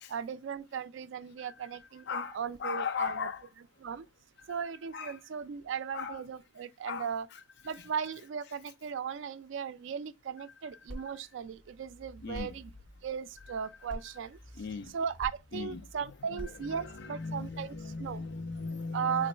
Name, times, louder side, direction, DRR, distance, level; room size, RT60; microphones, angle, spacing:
voice 1, 0.1-3.3 3.8-4.1 4.5-7.3 7.6-12.7 13.0-14.4 14.9-17.7 18.0-18.2 18.9-19.3, right 7 dB, 65° right, 0.3 m, -37 dB
voice 2, 2.1-3.5 4.9-5.2 5.9-6.2 6.8-7.4 7.7-7.9 12.2-12.6 14.6-14.9 15.5-15.9 16.2-19.3, left 5 dB, 55° left, 0.5 m, -38 dB
sound 1, 10.9-18.7, equal, 5° left, 1.9 m, -49 dB
3.0 x 2.5 x 4.2 m
head